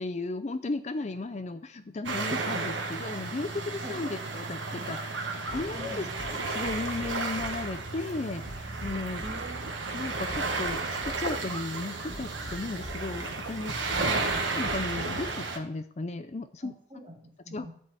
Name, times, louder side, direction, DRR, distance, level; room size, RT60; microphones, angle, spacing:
voice 1, 0.0-9.2 9.9-13.9 14.5-16.7 17.5-17.7, left 2 dB, 35° left, 10 dB, 0.5 m, -35 dB
sound 1, 2.0-15.6, right 3 dB, 70° right, 1.3 m, -33 dB
sound 2, 5.5-15.4, equal, 50° left, 4.7 m, -43 dB
voice 2, 5.7-6.1 9.2-9.6 13.9-14.2 16.6-17.7, right 1 dB, 25° right, 1 dB, 1.6 m, -44 dB
12.0 x 4.1 x 7.6 m, 0.63 s
head